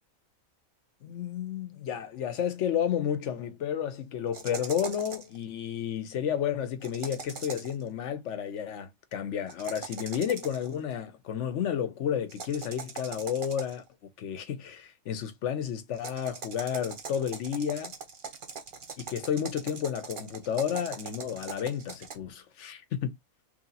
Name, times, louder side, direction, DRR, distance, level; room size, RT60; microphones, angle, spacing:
voice 1, 1.0-13.8 14.2-17.9 19.0-23.1, left 8 dB, 60° left, 1.0 m, -31 dB
sound 1, 4.3-5.4 6.8-7.8 9.5-10.7 12.3-13.9 15.9-22.1, right 5 dB, 45° right, 0.8 m, -41 dB
3.2 x 2.8 x 4.0 m
omnidirectional pair, 1.5 m